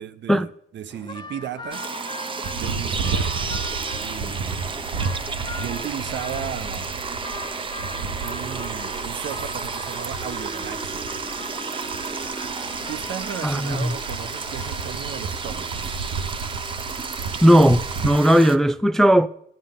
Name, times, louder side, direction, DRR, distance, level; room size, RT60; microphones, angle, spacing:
voice 1, 0.0-1.9 2.6-3.3 4.0-4.6 5.6-6.9 8.2-11.0 12.9-16.0, right 9 dB, 65° right, 0.8 m, -35 dB
sound 1, 0.9-15.9, left 2 dB, 20° left, 0.9 m, -41 dB
sound 2, 1.7-18.6, right 4 dB, 25° right, 0.7 m, -32 dB
sound 3, 2.4-18.1, right 5 dB, 90° right, 1.1 m, -33 dB
voice 2, 13.4-13.9 17.4-19.3, equal, ahead, 0.3 m, -17 dB
13.5 x 10.5 x 3.7 m
cardioid pair, 90°, 20 cm